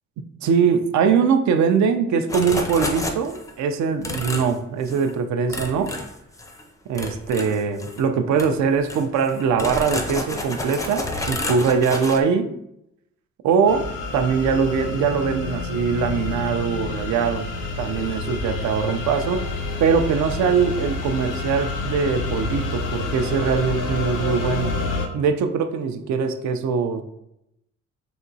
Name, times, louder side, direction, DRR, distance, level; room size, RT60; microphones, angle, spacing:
voice 1, 0.4-5.9 6.9-12.5 13.4-17.5 17.8-19.4 19.8-24.8 25.1-27.0, right 6 dB, 70° right, 8 dB, 0.5 m, -22 dB
sound 1, 2.3-3.5 4.0-4.6 4.9-5.1 5.5-6.6 6.9-8.0 8.4-8.5 8.8-12.2, left 2 dB, 10° left, 0.4 m, -30 dB
sound 2, 13.7-25.1, left 3 dB, 90° left, 0.6 m, -28 dB
3.5 x 2.9 x 2.7 m, 0.81 s
cardioid pair, 90°, 30 cm